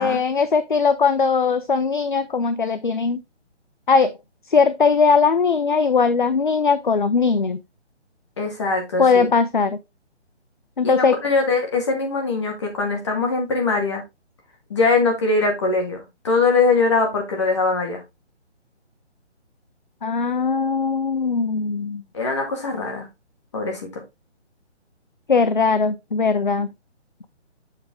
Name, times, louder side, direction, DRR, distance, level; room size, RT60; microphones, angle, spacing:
voice 1, 0.0-3.2 3.9-4.1 4.5-7.6 9.0-9.8 10.8-11.2 20.0-22.0 25.3-26.7, left 5 dB, 45° left, 0.5 m, -19 dB
voice 2, 8.4-9.3 10.8-14.0 14.7-18.0 22.1-23.1 23.5-24.0, left 3 dB, 25° left, 1.9 m, -22 dB
7.3 x 4.9 x 3.5 m
hypercardioid pair, 175°, 35 cm